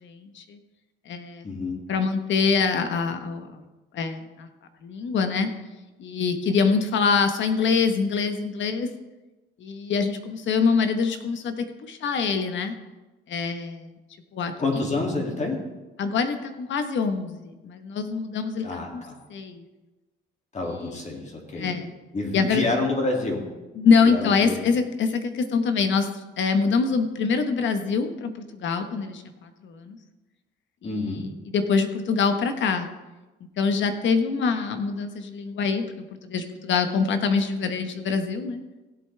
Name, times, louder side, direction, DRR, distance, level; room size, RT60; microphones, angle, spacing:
voice 1, 0.0-0.6 1.1-1.4 1.9-3.6 3.9-4.5 4.8-5.5 6.0-8.9 9.6-12.7 13.3-13.9 14.3-14.8 16.0-19.0 19.3-19.6 20.6-21.0 21.5-21.9 22.3-22.6 23.8-26.1 26.4-30.0 30.8-31.3 31.5-32.9 33.6-35.8 36.2-38.6, left 5 dB, 70° left, 8 dB, 1.2 m, -25 dB
voice 2, 1.4-1.8 14.6-15.6 18.6-19.2 20.5-21.7 22.1-23.4 24.0-24.6 30.8-31.3, left 3 dB, 35° left, 0 dB, 2.5 m, -28 dB
16.5 x 8.0 x 3.4 m, 1.1 s
cardioid pair, 90°, 20 cm